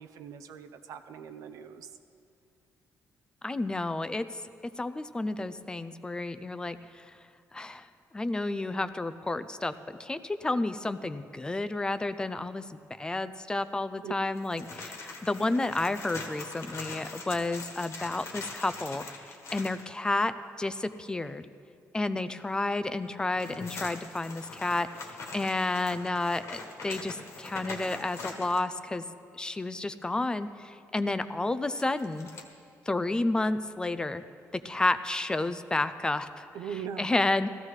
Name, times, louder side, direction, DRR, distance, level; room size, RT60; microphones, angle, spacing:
voice 1, 0.0-1.9 14.0-14.1 36.5-37.1, right 8 dB, 80° right, 9 dB, 0.6 m, -40 dB
voice 2, 3.4-7.1 7.5-7.9 8.1-9.7 10.0-19.0 19.5-21.5 21.9-29.0 29.3-32.3 32.9-34.2 34.5-36.5 37.0-37.5, left 2 dB, 15° left, 12 dB, 0.3 m, -31 dB
sound 1, 14.4-19.9 23.1-28.7 31.7-32.4, left 3 dB, 55° left, 1.4 m, -43 dB
16.0 x 14.0 x 3.2 m, 2.4 s
cardioid pair, 145°, 6 cm